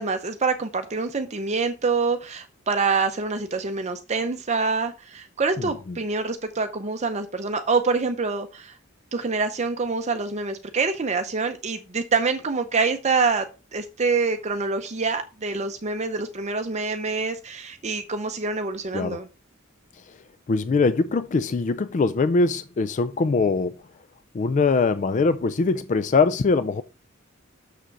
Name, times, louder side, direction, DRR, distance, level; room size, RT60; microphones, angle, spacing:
voice 1, 0.0-8.8 9.1-13.5 13.7-19.3, right 4 dB, 35° right, 0.6 m, -26 dB
voice 2, 5.6-6.0 18.9-19.2 20.5-23.8 24.3-26.8, left 4 dB, 35° left, 0.3 m, -22 dB
6.7 x 6.4 x 4.6 m
head